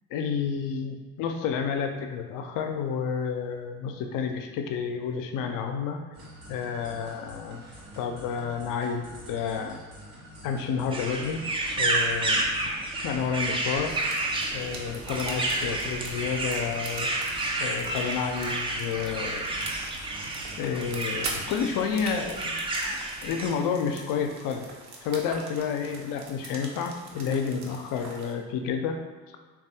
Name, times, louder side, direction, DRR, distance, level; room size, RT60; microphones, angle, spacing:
voice 1, 0.1-6.0 6.5-7.6 8.0-9.8 10.4-11.5 11.8-12.5 13.0-13.9 14.5-17.1 17.6-19.6 20.6-22.5 22.9-24.7 25.0-29.0, left 6 dB, 50° left, 5 dB, 0.5 m, -30 dB
sound 1, 6.1-21.6, equal, 75° right, 0.9 m, -47 dB
sound 2, 10.9-23.5, right 2 dB, 15° right, 0.4 m, -30 dB
sound 3, 13.9-28.3, right 3 dB, 40° right, 0.7 m, -43 dB
3.3 x 2.3 x 2.7 m, 1.4 s
hypercardioid pair, 55°, 42 cm